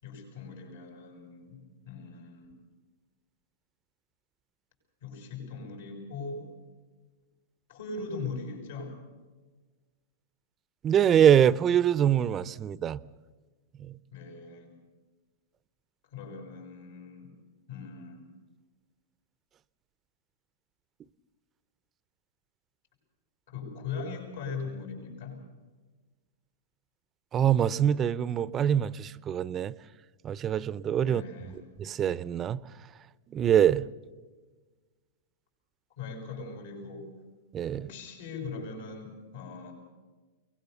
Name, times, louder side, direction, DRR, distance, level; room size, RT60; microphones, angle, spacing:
voice 1, 0.0-2.6 5.0-6.5 7.7-9.0 14.1-14.7 16.1-17.3 17.7-18.2 23.5-25.4 31.0-31.6 36.0-37.1 37.7-39.7, left 4 dB, 75° left, 6.8 m, -40 dB
voice 2, 10.8-13.0 13.8-13.9 27.3-29.7 30.2-31.2 31.8-32.6 33.3-33.9 37.5-37.9, right 9 dB, 25° right, 0.6 m, -24 dB
22.5 x 20.0 x 6.8 m
hypercardioid pair, 120°, 0 cm